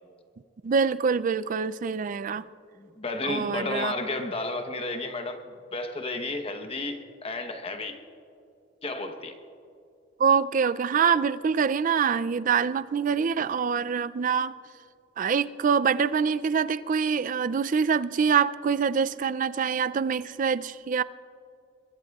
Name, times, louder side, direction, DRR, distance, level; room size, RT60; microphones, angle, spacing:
voice 1, 0.6-2.5 3.2-3.9 10.2-14.5 15.2-21.0, right 6 dB, 40° right, 16 dB, 0.3 m, -25 dB
voice 2, 2.8-8.0 8.8-9.3, left 2 dB, 30° left, 6 dB, 1.0 m, -32 dB
22.5 x 22.5 x 2.4 m, 2.5 s
head